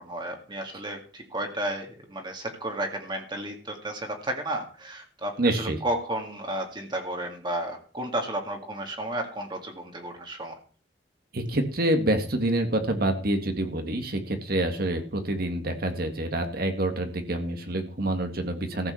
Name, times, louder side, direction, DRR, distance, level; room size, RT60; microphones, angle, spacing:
voice 1, 0.0-10.6, right 1 dB, 25° right, 3 dB, 2.2 m, -33 dB
voice 2, 5.4-5.8 11.3-18.9, right 1 dB, 55° right, 6 dB, 1.9 m, -27 dB
14.5 x 5.9 x 7.1 m, 0.39 s
head